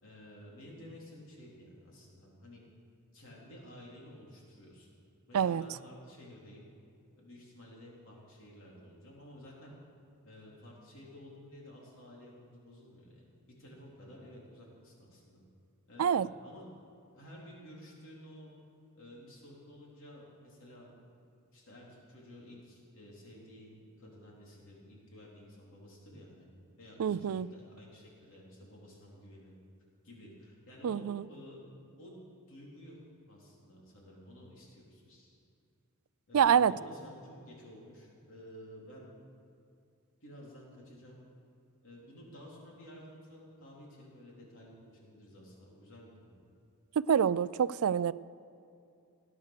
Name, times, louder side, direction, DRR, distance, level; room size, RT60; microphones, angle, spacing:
voice 1, 0.0-2.6 3.1-4.9 5.3-6.7 7.2-9.8 10.2-13.2 13.6-15.4 15.9-16.7 17.1-18.5 19.0-21.0 21.5-26.5 26.8-29.5 30.0-31.6 32.0-33.0 33.3-35.4 36.3-39.1 40.2-41.2 41.8-46.4, equal, 60° left, -3 dB, 3.8 m, -52 dB
voice 2, 27.0-27.5 30.8-31.2 36.3-36.7 47.0-48.1, right 8 dB, 70° right, 19 dB, 0.4 m, -26 dB
17.5 x 9.6 x 6.7 m, 2.5 s
head